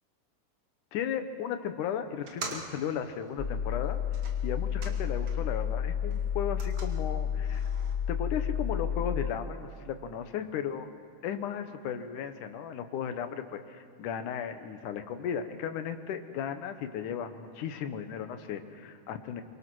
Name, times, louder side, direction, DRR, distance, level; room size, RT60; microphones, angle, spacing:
voice 1, 0.9-4.0 4.4-7.7 8.1-10.9 11.2-19.4, left 8 dB, 80° left, 8 dB, 2.7 m, -35 dB
sound 1, 2.2-5.6 5.9-7.9, right 3 dB, 45° right, 2.7 m, -45 dB
sound 2, 3.4-9.3, left 8 dB, 65° left, 0.7 m, -31 dB
25.0 x 23.5 x 6.3 m, 2.5 s
omnidirectional pair, 3.5 m